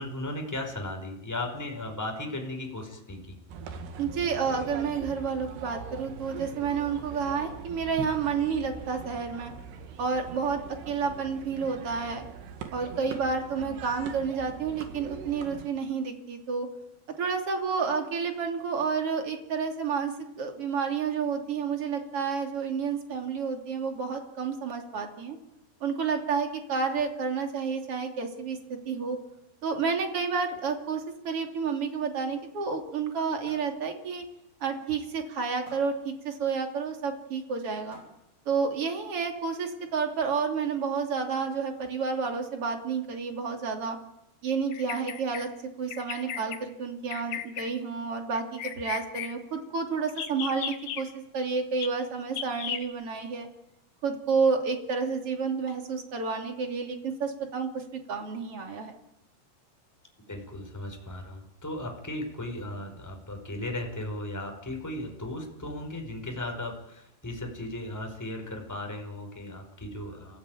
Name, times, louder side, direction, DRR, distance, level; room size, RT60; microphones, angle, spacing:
voice 1, 0.0-3.4 60.3-70.4, left 1 dB, 5° left, 2 dB, 4.5 m, -36 dB
sound 1, 3.5-15.7, right 6 dB, 85° right, 4.1 m, -42 dB
voice 2, 4.0-9.5 10.0-12.2 12.7-16.7 17.2-25.4 25.8-28.6 28.8-29.2 29.6-34.2 34.6-38.0 38.4-44.0 44.4-45.5 45.8-53.5 54.0-58.9, right 5 dB, 40° right, 4 dB, 3.4 m, -30 dB
sound 2, 32.6-33.2 33.5-33.8 34.2-34.4 34.7-34.8 35.7-36.0 37.2-37.3 37.9-38.4, equal, 20° right, 8.2 m, -52 dB
Bird vocalization bird call bird song, 44.7-45.5 45.9-46.6 47.1-47.7 48.3-49.3 50.1-51.0 51.8-51.9 52.3-52.8, left 9 dB, 90° left, 3.7 m, -35 dB
30.0 x 16.5 x 9.3 m, 0.92 s
omnidirectional pair, 4.7 m